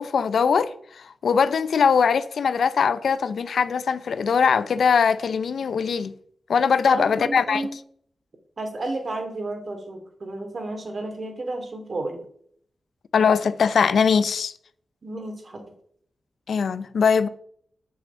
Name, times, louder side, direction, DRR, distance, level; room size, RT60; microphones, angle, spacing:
voice 1, 0.0-6.1 6.5-7.6 13.1-14.5 16.5-17.3, left 6 dB, 80° left, 0.6 m, -21 dB
voice 2, 6.9-7.7 8.6-12.2 15.0-15.6, right 2 dB, 55° right, 2.6 m, -32 dB
8.0 x 6.3 x 6.8 m
cardioid pair, 70°, 0 cm